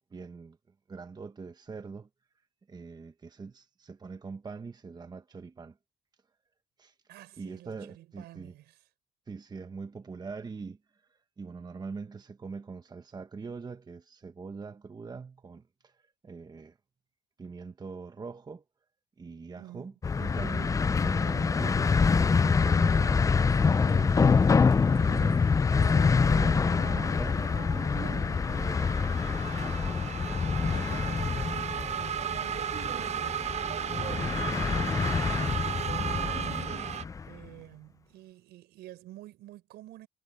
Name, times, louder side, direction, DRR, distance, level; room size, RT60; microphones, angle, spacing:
voice 1, 0.1-0.6 0.9-2.1 2.7-5.8 6.8-6.9 7.4-8.5 9.3-16.8 17.4-18.6 19.2-22.0 22.4-25.5 25.9-29.0, right 4 dB, 25° right, 1.1 m, -43 dB
voice 2, 7.1-8.8 19.6-19.9 22.8-23.3 30.6-40.1, right 15 dB, 80° right, 5.3 m, -49 dB
sound 1, 20.0-37.3, left 5 dB, 20° left, 0.4 m, -26 dB
sound 2, 20.3-37.0, right 9 dB, 40° right, 0.7 m, -37 dB
cardioid pair, 110°, 17 cm